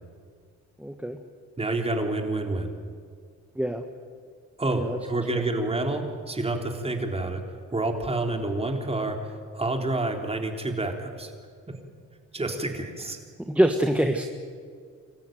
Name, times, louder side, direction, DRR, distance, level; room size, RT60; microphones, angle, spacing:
voice 1, 0.8-1.2 3.5-3.8 4.7-5.0 13.5-14.3, right 1 dB, 5° right, 6 dB, 1.5 m, -24 dB
voice 2, 1.6-2.7 4.6-7.4 7.7-11.3 12.3-13.2, right 2 dB, 20° right, 3 dB, 3.6 m, -28 dB
27.0 x 14.5 x 9.3 m, 2.1 s
cardioid pair, 90°, 30 cm